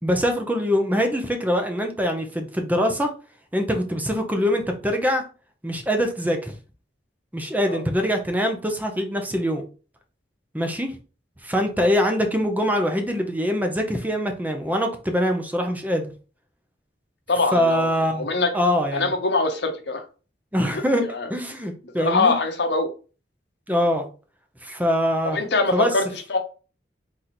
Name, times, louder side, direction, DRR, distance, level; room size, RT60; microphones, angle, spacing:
voice 1, 0.0-3.1 3.5-5.2 5.6-6.5 7.3-9.6 10.5-11.0 11.4-16.1 17.5-18.3 18.5-19.1 20.5-21.0 21.3-22.3 23.7-24.0 24.6-25.4 25.7-25.9, equal, 10° right, 4 dB, 0.7 m, -23 dB
voice 2, 17.3-18.5 18.9-20.0 20.7-20.8 21.1-21.3 22.0-22.9 25.3-26.4, left 3 dB, 70° left, 5 dB, 0.9 m, -23 dB
3.9 x 3.0 x 4.2 m, 0.35 s
head